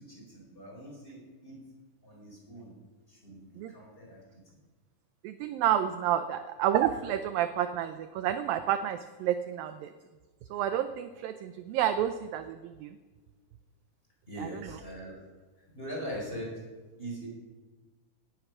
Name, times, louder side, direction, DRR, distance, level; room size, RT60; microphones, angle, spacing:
voice 1, 0.0-1.6 2.0-2.8 3.1-4.6 14.3-15.2 15.6-16.6 17.0-17.3, equal, 15° left, -2 dB, 4.3 m, -42 dB
voice 2, 5.2-9.9 10.5-13.0 14.4-14.8, right 10 dB, 85° right, 10 dB, 2.0 m, -30 dB
19.0 x 10.0 x 6.0 m, 1.3 s
omnidirectional pair, 4.8 m